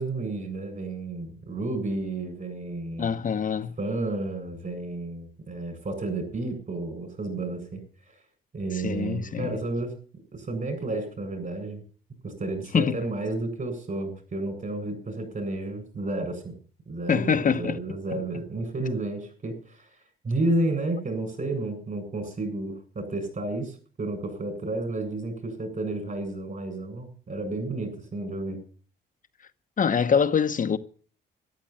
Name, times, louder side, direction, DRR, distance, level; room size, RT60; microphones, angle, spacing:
voice 1, 0.0-3.1 3.8-7.8 8.1-8.2 8.5-9.9 10.3-11.8 12.2-16.5 16.9-19.9 20.2-28.6, right 2 dB, 40° right, 7.9 m, -31 dB
voice 2, 3.0-3.7 8.7-9.5 12.7-12.9 17.1-17.8 29.8-30.8, left 6 dB, 40° left, 0.9 m, -24 dB
13.0 x 11.5 x 7.5 m
cardioid pair, 90°, 20 cm